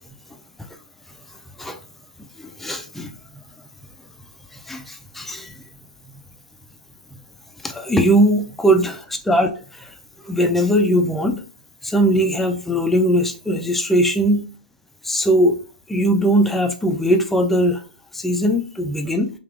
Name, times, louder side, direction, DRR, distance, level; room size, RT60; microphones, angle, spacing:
voice 1, 2.4-3.2 4.5-5.6 7.1-7.2 7.6-9.9 10.2-11.4 11.8-14.4 15.0-15.6 15.9-17.8 18.1-19.3, equal, 5° left, 0.4 m, -20 dB
3.3 x 2.8 x 2.4 m
hypercardioid pair, 120°, 5 cm